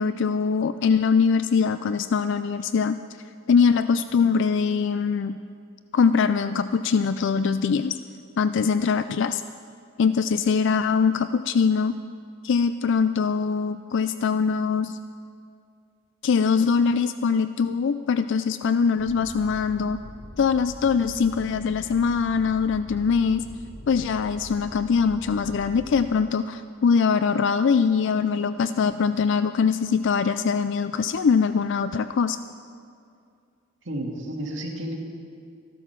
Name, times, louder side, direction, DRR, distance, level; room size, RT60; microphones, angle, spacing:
voice 1, 0.0-3.0 3.5-5.4 5.9-8.0 8.4-9.4 10.0-12.0 12.4-15.0 16.2-20.0 20.4-23.5 23.9-32.4, left 5 dB, 65° left, 12 dB, 0.4 m, -22 dB
sound 1, 19.0-26.1, equal, 40° left, 3.0 m, -43 dB
voice 2, 33.9-34.9, right 1 dB, 65° right, 0 dB, 2.2 m, -31 dB
14.5 x 12.5 x 6.0 m, 2.4 s
head